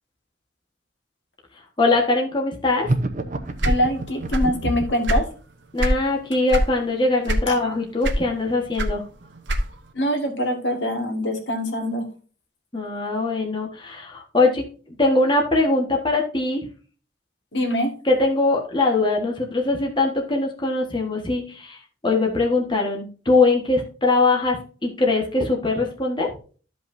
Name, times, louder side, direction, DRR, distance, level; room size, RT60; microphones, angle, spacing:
voice 1, 1.8-2.9 5.7-9.0 12.7-14.6 15.0-16.6 18.0-21.8 22.0-24.6 24.8-26.3, left 2 dB, 25° left, 0 dB, 1.4 m, -21 dB
sound 1, 2.8-5.1, right 2 dB, 45° right, 0.8 m, -26 dB
voice 2, 3.6-5.2 7.5-7.6 9.9-12.0 17.5-17.9, equal, 75° left, 4 dB, 1.9 m, -24 dB
sound 2, 3.6-4.6 4.9-6.0 6.5-6.8 7.2-7.7 8.0-9.9, equal, 80° right, 1.2 m, -23 dB
13.5 x 5.4 x 2.6 m, 0.39 s
head